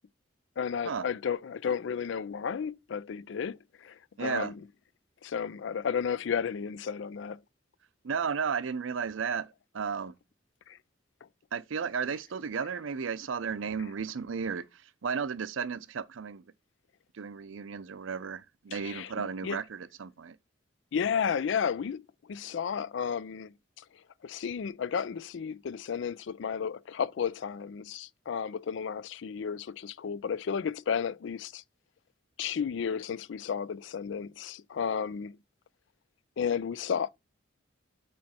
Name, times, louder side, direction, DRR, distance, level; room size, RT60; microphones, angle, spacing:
voice 1, 0.6-4.6 5.2-7.4 10.7-10.8 18.7-19.6 20.9-23.8 24.2-31.6 32.4-35.4 36.4-37.1, left 7 dB, 70° left, 0.4 m, -33 dB
voice 2, 4.2-4.5 8.0-10.1 11.5-14.6 15.0-16.4 17.1-20.4, right 6 dB, 85° right, 0.5 m, -34 dB
8.7 x 3.1 x 4.3 m
head